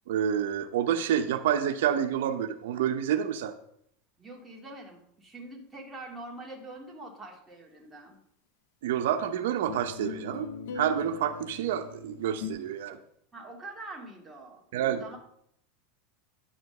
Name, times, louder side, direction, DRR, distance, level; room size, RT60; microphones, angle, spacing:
voice 1, 0.1-3.5 8.8-10.5 10.7-13.0 14.7-15.0, right 9 dB, 80° right, 8 dB, 0.7 m, -28 dB
voice 2, 4.2-8.2 13.3-15.2, right 2 dB, 10° right, -1 dB, 2.1 m, -44 dB
sound 1, 9.7-12.5, left 5 dB, 85° left, 1.5 m, -40 dB
10.0 x 5.1 x 6.5 m, 0.71 s
supercardioid pair, 140°, 0 cm